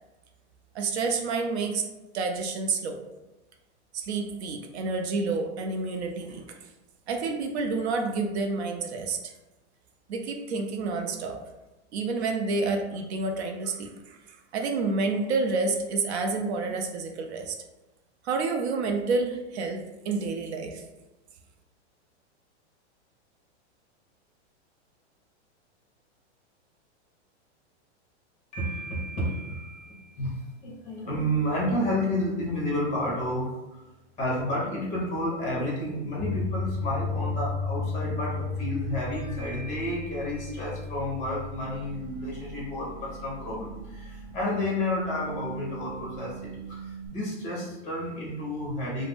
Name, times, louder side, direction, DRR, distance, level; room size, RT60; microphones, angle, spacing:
voice 1, 0.7-1.9 2.1-3.0 3.9-6.6 7.1-9.3 10.1-11.4 11.9-17.6 18.2-20.8, right 3 dB, 65° right, 4 dB, 0.5 m, -29 dB
voice 2, 28.5-33.8 34.2-49.1, left 1 dB, 20° left, -4 dB, 0.9 m, -31 dB
sound 1, 36.2-47.1, left 2 dB, 35° right, 0.9 m, -35 dB
2.5 x 2.0 x 3.4 m, 1.0 s
supercardioid pair, 150°, 35 cm